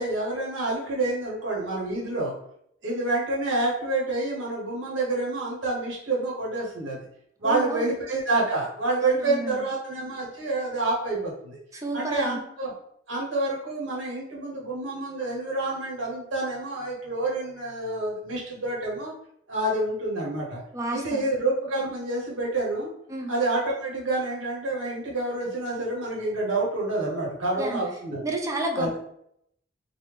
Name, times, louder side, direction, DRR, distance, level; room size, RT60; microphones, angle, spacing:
voice 1, 0.0-2.3 2.8-7.0 7.4-11.6 11.9-12.7 13.1-19.1 19.5-20.6 20.9-22.9 23.3-28.2 28.7-28.9, right 2 dB, 85° right, -3 dB, 0.9 m, -28 dB
voice 2, 7.4-7.9 9.0-9.6 11.7-12.4 20.7-21.3 23.1-23.3 27.6-27.8 28.2-29.0, right 1 dB, 15° right, 2 dB, 0.4 m, -30 dB
3.3 x 2.0 x 3.3 m, 0.72 s
head